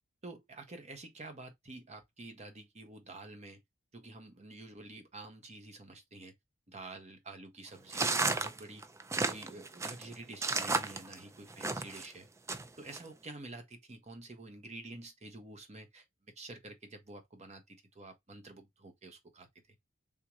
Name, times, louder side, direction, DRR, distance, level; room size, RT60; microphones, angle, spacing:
voice 1, 0.2-3.6 3.9-6.3 6.7-8.8 9.3-12.3 12.8-16.0 16.4-19.8, right 2 dB, 35° right, 1.0 m, -49 dB
sound 1, 7.9-12.1 12.5-13.0, right 3 dB, 15° right, 0.3 m, -33 dB
3.6 x 2.8 x 3.0 m
head